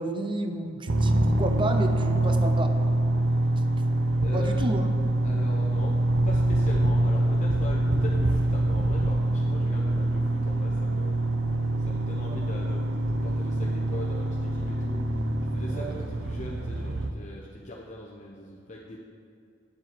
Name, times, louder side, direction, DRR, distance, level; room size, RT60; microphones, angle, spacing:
voice 1, 0.0-2.8 4.2-4.9 12.3-12.4 15.7-16.1, right 1 dB, 25° right, 6 dB, 0.6 m, -31 dB
sound 1, 0.9-17.1, right 1 dB, 75° right, 0.7 m, -25 dB
voice 2, 4.2-4.7 5.2-5.9 6.2-11.2 11.9-15.0 15.5-19.0, left 1 dB, 40° left, -3 dB, 0.8 m, -40 dB
9.6 x 7.3 x 4.6 m, 2.4 s
head